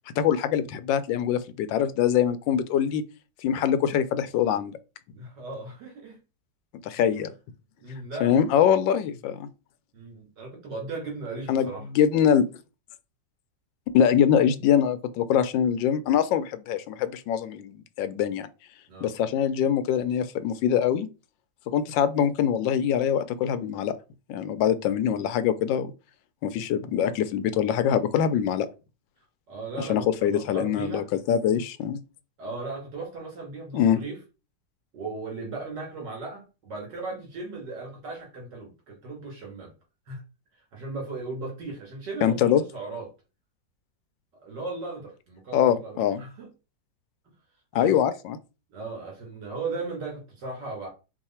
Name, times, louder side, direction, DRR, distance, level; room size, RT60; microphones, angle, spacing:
voice 1, 0.2-3.0 3.4-4.7 6.8-7.3 8.2-9.5 11.5-12.5 13.9-18.5 19.0-21.1 21.7-23.9 24.3-25.9 26.4-28.7 29.8-32.0 33.7-34.0 42.2-42.6 45.5-46.2 47.7-48.4, left 9 dB, 90° left, 1.3 m, -23 dB
voice 2, 5.1-6.2 7.8-8.4 9.9-11.8 18.9-19.1 29.5-31.1 32.4-34.2 34.9-39.7 40.1-40.2 40.7-43.1 44.4-46.5 47.7-48.1 48.7-50.9, right 3 dB, 70° right, 2.8 m, -37 dB
4.7 x 2.4 x 4.3 m
omnidirectional pair, 2.0 m